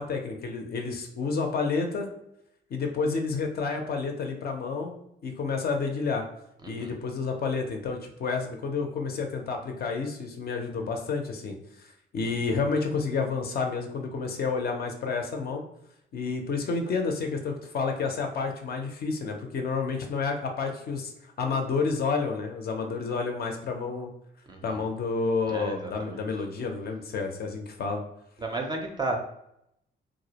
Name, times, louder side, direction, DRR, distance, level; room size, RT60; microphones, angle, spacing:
voice 1, 0.0-2.1 2.7-4.9 5.2-6.2 6.7-11.6 12.1-15.6 16.1-21.1 21.4-24.1 24.6-28.0, left 4 dB, 50° left, 3 dB, 0.5 m, -30 dB
voice 2, 6.6-6.9 12.2-12.5 24.5-24.8 25.5-26.3 28.4-29.2, right 2 dB, 20° right, 2 dB, 0.4 m, -34 dB
2.3 x 2.0 x 2.8 m, 0.78 s
cardioid pair, 90°, 20 cm